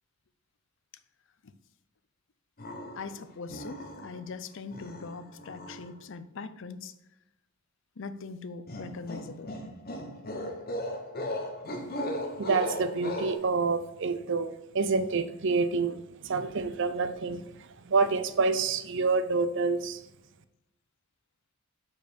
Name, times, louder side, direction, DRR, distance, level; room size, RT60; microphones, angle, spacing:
sound 1, 2.6-3.2 3.5-4.3 4.7-5.9 8.7-13.3, left 1 dB, 45° left, 1.2 m, -37 dB
voice 1, 3.0-6.9 8.0-9.5, left 4 dB, 65° left, 12 dB, 0.6 m, -41 dB
voice 2, 12.4-20.0, right 4 dB, 60° right, 12 dB, 0.6 m, -28 dB
6.6 x 5.2 x 5.2 m, 0.86 s
head